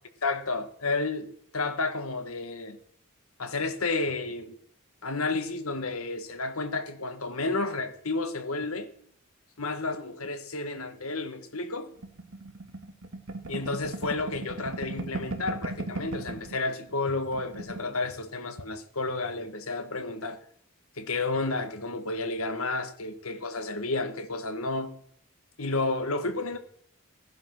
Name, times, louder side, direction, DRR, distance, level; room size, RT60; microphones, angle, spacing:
voice 1, 0.2-2.8 3.4-4.6 5.0-8.9 9.6-11.9 13.5-20.4 21.0-25.0 25.6-26.6, left 3 dB, 80° left, 1.7 m, -31 dB
sound 1, 12.0-16.6 16.9-17.0 17.3-17.9, right 2 dB, 70° right, 2.1 m, -36 dB
16.0 x 10.5 x 6.1 m
head